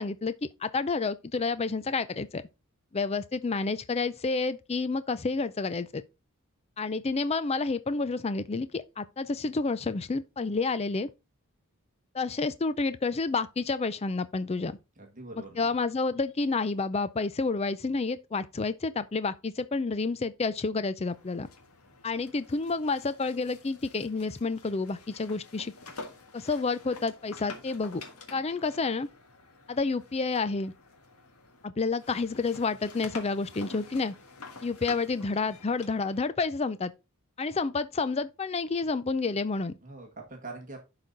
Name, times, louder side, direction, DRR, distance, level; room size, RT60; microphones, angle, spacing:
voice 1, 0.0-2.4 2.9-6.0 6.8-11.1 12.1-14.8 15.6-21.5 22.0-25.7 26.3-28.0 28.3-29.1 29.7-30.7 31.6-34.1 34.6-36.9 37.4-39.8, left 4 dB, 30° left, 0.5 m, -29 dB
voice 2, 15.0-15.7 39.8-40.8, right 3 dB, 35° right, 1.6 m, -43 dB
sound 1, 21.1-31.7 32.0-36.3, left 3 dB, 75° left, 1.6 m, -48 dB
11.0 x 4.1 x 3.9 m
head